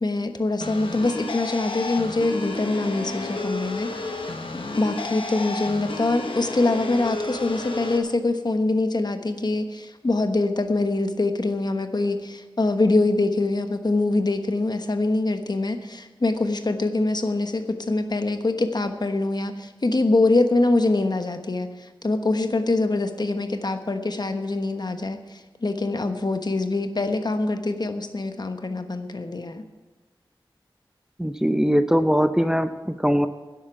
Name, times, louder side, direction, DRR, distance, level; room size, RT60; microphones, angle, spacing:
voice 1, 0.0-3.9 4.5-29.6, left 2 dB, 55° left, 7 dB, 1.2 m, -24 dB
sound 1, 0.6-8.0, left 2 dB, 85° left, 1.3 m, -32 dB
voice 2, 31.2-33.3, equal, 5° right, 10 dB, 0.7 m, -21 dB
11.0 x 8.1 x 9.1 m, 1.2 s
wide cardioid pair, 45°, 9 cm